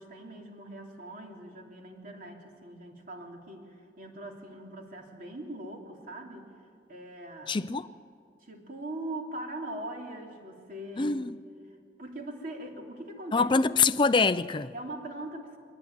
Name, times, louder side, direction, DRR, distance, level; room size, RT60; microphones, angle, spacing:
voice 1, 0.0-6.5 6.9-7.6 8.4-11.3 12.0-13.6 14.7-15.6, right 1 dB, 50° right, 3.1 m, -41 dB
voice 2, 7.5-7.9 11.0-11.4 13.3-14.7, left 4 dB, 25° left, 0.5 m, -25 dB
22.5 x 19.0 x 9.3 m
head